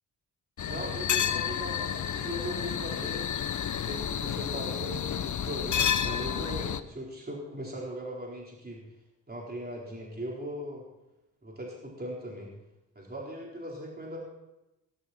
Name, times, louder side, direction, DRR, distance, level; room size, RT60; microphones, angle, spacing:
sound 1, 0.6-6.8, left 8 dB, 45° left, 0.9 m, -30 dB
voice 1, 0.7-3.3 3.8-8.8 9.3-10.8 11.4-12.5 12.9-14.2, equal, 20° right, -3 dB, 4.3 m, -39 dB
18.0 x 12.5 x 4.4 m, 0.94 s
supercardioid pair, 60°, 42 cm